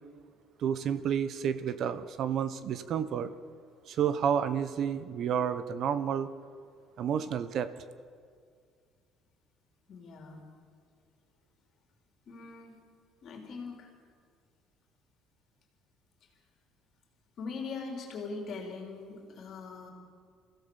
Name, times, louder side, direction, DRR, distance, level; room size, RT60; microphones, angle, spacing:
voice 1, 0.6-3.3 3.9-6.3 7.0-7.7, right 8 dB, 50° right, 13 dB, 1.0 m, -30 dB
voice 2, 9.9-10.4 12.3-12.8 13.2-13.9 17.4-19.9, left 4 dB, 45° left, 2 dB, 3.7 m, -41 dB
28.0 x 16.0 x 7.2 m, 2.1 s
cardioid pair, 155°, 0 cm